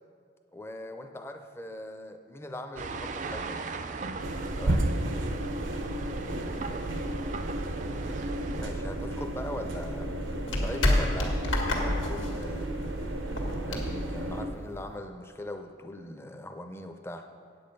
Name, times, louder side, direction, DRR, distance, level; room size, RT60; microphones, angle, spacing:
voice 1, 0.5-3.7 4.6-4.9 8.5-10.1 10.5-12.7 13.7-17.3, left 1 dB, 15° left, 6 dB, 0.5 m, -40 dB
sound 1, 2.8-8.6, right 4 dB, 40° right, 0.4 m, -38 dB
sound 2, 4.2-14.5, right 1 dB, 90° right, 0.9 m, -33 dB
sound 3, 9.0-15.0, left 1 dB, 85° left, 1.7 m, -30 dB
8.7 x 8.3 x 5.3 m, 2.4 s
head